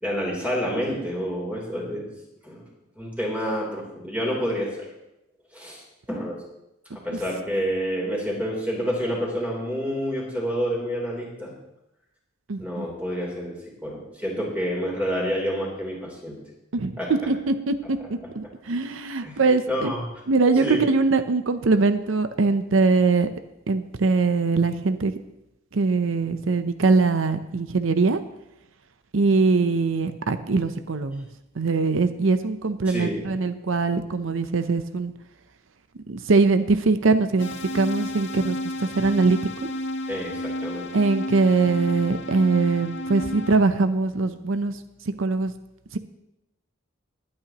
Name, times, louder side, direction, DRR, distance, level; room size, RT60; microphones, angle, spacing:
voice 1, 0.0-2.1 2.4-2.7 3.0-4.9 5.5-5.8 6.1-6.3 6.9-11.5 12.6-13.5 13.8-16.4 17.0-17.1 19.2-19.4 19.7-20.0 20.6-20.8 32.8-33.3 40.1-40.9, equal, 5° right, -3 dB, 3.5 m, -28 dB
voice 2, 12.5-12.8 16.7-18.0 18.4-19.9 20.3-23.3 23.7-25.1 25.7-28.2 29.1-31.2 31.6-35.1 36.1-37.5 37.7-39.4 40.9-44.7 45.2-45.5 45.9-46.0, right 3 dB, 70° right, 10 dB, 0.7 m, -22 dB
sound 1, 37.4-43.6, left 1 dB, 60° left, 0.7 m, -32 dB
21.5 x 8.7 x 3.0 m, 0.89 s
head